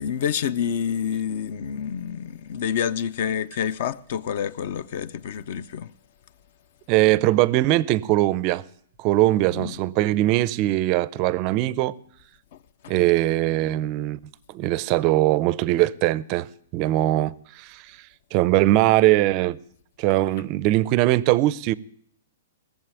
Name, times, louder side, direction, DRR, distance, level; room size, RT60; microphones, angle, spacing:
voice 1, 0.0-5.9 9.5-9.7 12.5-12.6 12.8-12.9, left 8 dB, 50° left, 0.7 m, -28 dB
voice 2, 6.9-8.6 9.0-11.9 12.9-14.2 14.5-16.5 16.7-18.0 18.3-19.6 20.0-21.7, right 16 dB, 30° right, 0.5 m, -21 dB
18.5 x 7.4 x 9.0 m
hypercardioid pair, 165°, 0 cm